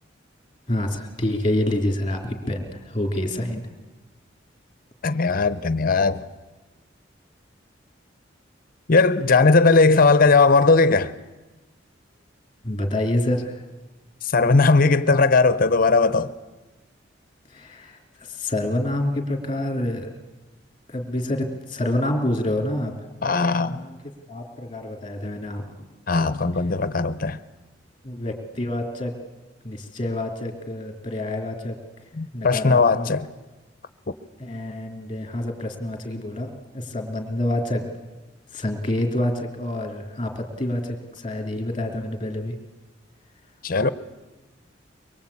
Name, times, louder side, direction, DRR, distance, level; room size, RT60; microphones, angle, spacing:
voice 1, 0.7-3.6 12.6-13.6 17.5-20.1 20.9-22.9 23.6-24.0 24.3-25.8 28.0-29.1 29.6-31.8 32.3-33.1 34.4-37.8 38.5-42.5, left 1 dB, 25° left, 3.3 m, -27 dB
voice 2, 5.0-6.2 8.9-11.1 14.2-16.3 23.2-23.8 26.1-27.4 32.2-33.3 43.6-43.9, left 3 dB, 45° left, 0.8 m, -18 dB
24.0 x 22.5 x 8.6 m
head